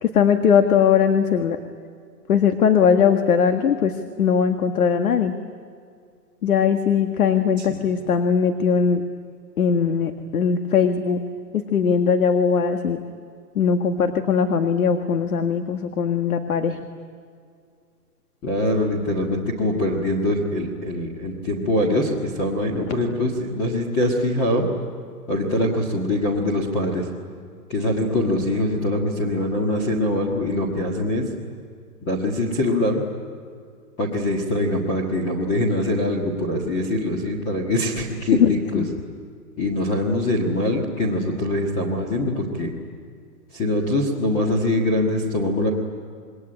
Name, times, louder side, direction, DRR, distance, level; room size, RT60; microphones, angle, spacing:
voice 1, 0.0-1.6 2.3-3.9 4.2-5.3 6.4-9.0 9.6-11.2 11.5-13.0 13.6-16.8 38.4-38.9, left 7 dB, 65° left, 7 dB, 1.8 m, -20 dB
voice 2, 18.4-24.7 25.3-27.1 27.7-31.2 32.0-33.0 34.0-38.8 39.6-42.7 43.5-45.7, left 1 dB, 15° left, 0 dB, 1.6 m, -23 dB
27.0 x 21.5 x 10.0 m, 2.2 s
hypercardioid pair, 170°, 47 cm